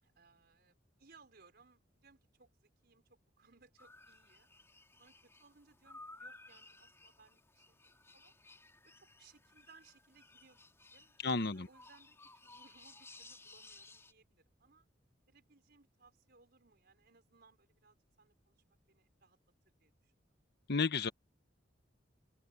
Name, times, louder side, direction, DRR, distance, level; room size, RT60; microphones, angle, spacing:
voice 1, 0.0-4.5 5.0-8.3 8.8-14.8 15.3-19.4 19.8-20.1, right 4 dB, 60° right, 4.8 m, -66 dB
sound 1, 3.8-14.1, left 2 dB, 15° left, 3.7 m, -58 dB
voice 2, 11.2-11.7 20.7-21.1, left 4 dB, 60° left, 1.0 m, -32 dB
open air
head